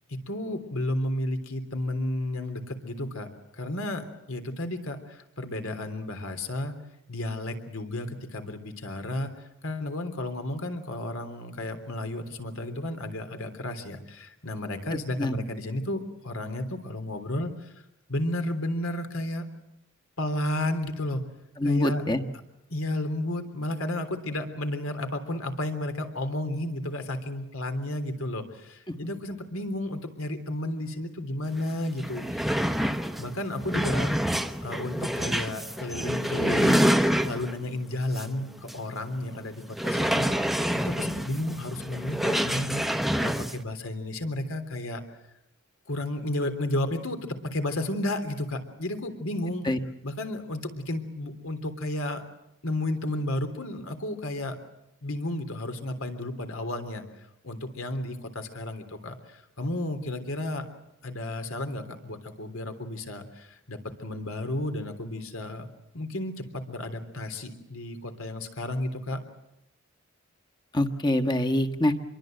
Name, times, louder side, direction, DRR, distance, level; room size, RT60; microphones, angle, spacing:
voice 1, 0.1-6.8 7.1-9.3 9.6-17.7 18.1-19.5 20.2-21.2 21.6-22.0 22.7-32.5 33.2-40.5 40.8-45.0 45.9-49.7 50.0-52.2 52.6-54.6 55.0-57.0 57.4-60.7 61.0-65.7 65.9-69.2, left 1 dB, 75° left, 7 dB, 3.4 m, -32 dB
voice 2, 21.6-22.2 28.9-29.0 49.7-49.8 70.7-71.9, left 1 dB, 20° left, 6 dB, 1.4 m, -24 dB
sound 1, 31.6-31.7 31.9-37.6 38.1-38.3 38.7-38.8 39.7-43.6, equal, ahead, 0.9 m, -27 dB
26.0 x 23.0 x 7.9 m, 0.84 s
head